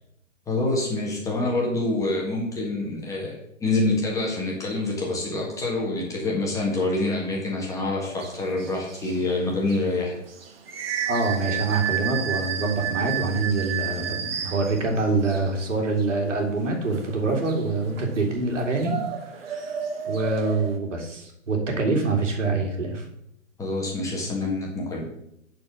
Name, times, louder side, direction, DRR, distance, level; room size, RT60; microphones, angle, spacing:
voice 1, 0.5-10.1 23.6-25.1, left 2 dB, 10° left, -3 dB, 1.6 m, -26 dB
sound 1, 8.1-20.8, right 9 dB, 45° right, 1.1 m, -33 dB
voice 2, 11.1-19.0 19.4-19.7 20.1-23.0, right 3 dB, 65° right, 2 dB, 2.6 m, -25 dB
10.5 x 4.5 x 6.0 m, 0.77 s
figure-of-eight pair, 130°, 39 cm